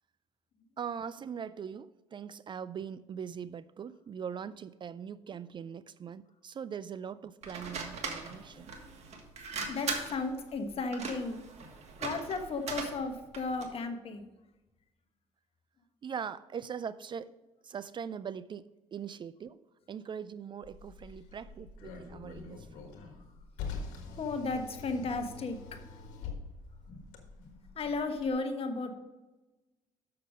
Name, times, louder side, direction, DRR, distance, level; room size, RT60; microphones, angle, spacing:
voice 1, 0.8-8.7 16.0-17.4 17.6-22.9, right 7 dB, 40° right, 16 dB, 0.3 m, -41 dB
sound 1, 7.4-13.8, right 4 dB, 60° right, 1.6 m, -40 dB
voice 2, 8.5-9.1 9.7-11.4 12.0-14.3 24.2-26.0 26.9-27.0 27.4-28.9, left 3 dB, 50° left, 6 dB, 1.3 m, -35 dB
Car, 20.6-28.3, left 5 dB, 80° left, 1.4 m, -45 dB
6.7 x 6.6 x 5.1 m, 1.1 s
supercardioid pair, 75°, 13 cm